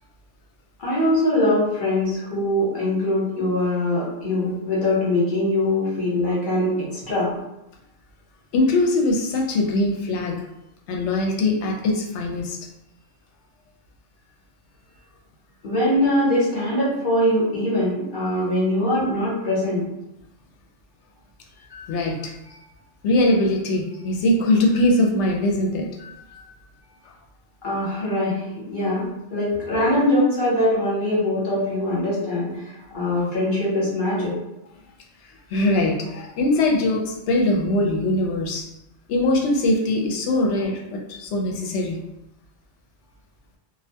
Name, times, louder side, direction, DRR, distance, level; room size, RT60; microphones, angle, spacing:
voice 1, 0.8-7.3 15.6-19.8 27.6-29.1 29.3-34.3, left 1 dB, 45° left, -7 dB, 1.0 m, -22 dB
voice 2, 8.5-10.4 10.9-12.6 21.7-22.6 23.0-26.4 35.5-38.7 39.1-42.0, left 1 dB, 75° left, 1 dB, 0.8 m, -22 dB
2.3 x 2.2 x 2.7 m, 0.88 s
omnidirectional pair, 1.2 m